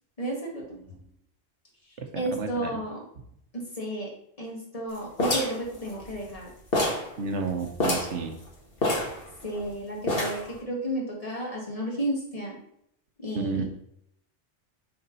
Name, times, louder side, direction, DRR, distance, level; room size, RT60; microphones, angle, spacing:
voice 1, 0.2-0.8 2.1-3.0 3.5-4.1 4.4-6.5 9.4-12.6 13.2-13.7, right 1 dB, 30° left, -2 dB, 2.1 m, -32 dB
voice 2, 2.4-2.8 7.2-8.4 13.3-13.6, right 4 dB, 80° right, 6 dB, 1.2 m, -31 dB
sound 1, 5.2-6.4 6.7-7.1 7.4-7.5 7.8-8.2 8.8-9.7 10.1-10.5, left 1 dB, 55° left, 1.9 m, -27 dB
6.8 x 4.1 x 5.5 m, 0.73 s
omnidirectional pair, 1.2 m